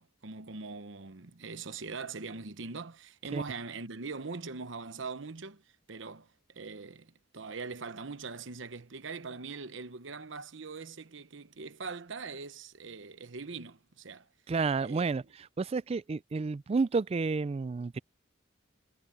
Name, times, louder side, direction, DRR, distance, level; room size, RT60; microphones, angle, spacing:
voice 1, 0.0-5.6 5.9-14.3 14.8-15.1, right 4 dB, 65° right, 1.0 m, -42 dB
voice 2, 14.5-15.2 15.6-18.0, right 4 dB, 30° right, 0.3 m, -30 dB
head